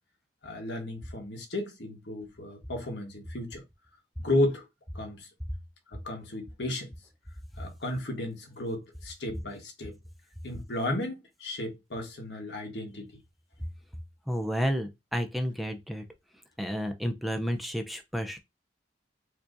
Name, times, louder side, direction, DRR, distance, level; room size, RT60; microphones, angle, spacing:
voice 1, 0.4-3.6 4.2-4.6 4.9-5.3 6.0-6.9 7.6-10.0 10.4-13.1, left 1 dB, 80° left, 1.3 m, -33 dB
voice 2, 14.3-16.0 16.6-18.4, equal, ahead, 0.4 m, -31 dB
4.5 x 2.8 x 2.5 m
head